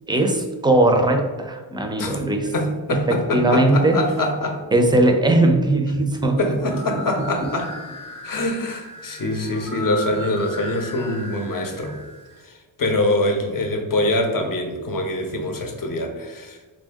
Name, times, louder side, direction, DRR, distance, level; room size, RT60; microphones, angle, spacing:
voice 1, 0.1-2.5 3.1-4.0 4.7-6.4 6.9-7.0, right 2 dB, 10° right, 3 dB, 0.4 m, -19 dB
voice 2, 2.0-4.6 6.4-7.7 8.2-12.0 12.4-16.6, left 1 dB, 45° left, 4 dB, 0.7 m, -24 dB
sound 1, 6.5-12.3, left 1 dB, 10° left, 0.7 m, -37 dB
3.4 x 2.6 x 3.5 m, 1.3 s
cardioid pair, 95°, 46 cm